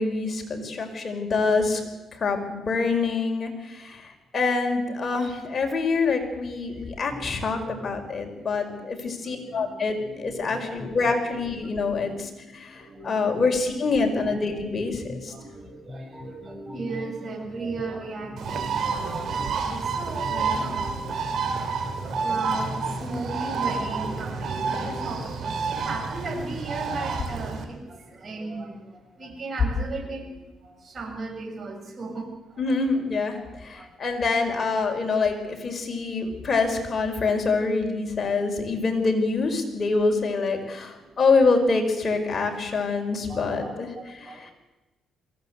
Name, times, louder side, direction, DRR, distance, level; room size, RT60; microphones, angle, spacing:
voice 1, 0.0-1.8 2.1-15.3 20.3-20.7 32.6-44.5, left 4 dB, 40° left, 4 dB, 5.0 m, -26 dB
sound 1, 7.1-25.3, left 2 dB, ahead, 4.4 m, -43 dB
voice 2, 7.5-7.9 8.4-9.6 10.1-10.8 11.9-12.1 12.5-13.4 15.3-21.7 22.0-28.8 29.1-32.3 33.3-33.5 33.8-33.9 41.0-41.1 43.3-44.5, right 3 dB, 40° right, 2 dB, 7.1 m, -37 dB
Bird, 18.4-27.6, right 5 dB, 65° right, 3.6 m, -29 dB
23.0 x 16.0 x 8.1 m, 1.1 s
cardioid pair, 90°, 0 cm